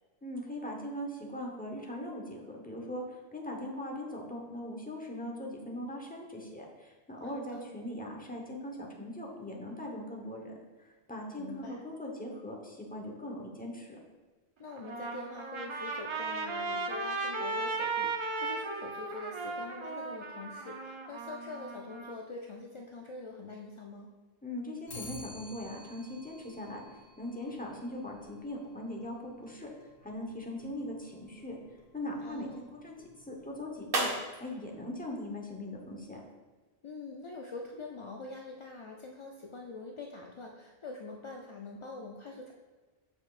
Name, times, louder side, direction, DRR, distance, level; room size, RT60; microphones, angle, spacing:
voice 1, 0.2-10.5 11.1-14.0 24.4-26.8 27.2-29.7 30.0-31.6 31.9-34.1 34.4-36.2, left 1 dB, 10° left, -1 dB, 0.8 m, -40 dB
voice 2, 7.2-7.7 11.4-11.8 14.6-24.1 32.2-32.7 36.8-42.5, left 3 dB, 50° left, 0 dB, 0.4 m, -44 dB
Trumpet, 14.7-22.1, right 3 dB, 40° right, 0.5 m, -36 dB
Clock, 24.9-34.2, left 1 dB, 80° left, 1.3 m, -53 dB
sound 1, 30.3-36.2, right 2 dB, 65° right, 1.1 m, -41 dB
7.5 x 6.1 x 2.4 m, 1.2 s
omnidirectional pair, 1.1 m